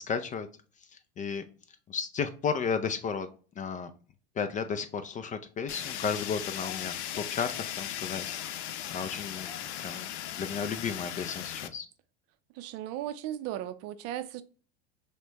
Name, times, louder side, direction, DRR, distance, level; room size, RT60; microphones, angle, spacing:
voice 1, 0.1-0.5 1.2-1.4 1.9-3.3 3.6-3.9 4.4-9.5 9.8-10.1 10.3-11.9, left 6 dB, 25° left, 0.3 m, -33 dB
Fire, 5.7-11.7, left 11 dB, 80° left, 0.5 m, -37 dB
voice 2, 12.5-14.4, right 12 dB, 50° right, 0.5 m, -36 dB
6.0 x 2.2 x 2.8 m
hypercardioid pair, 100°, 33 cm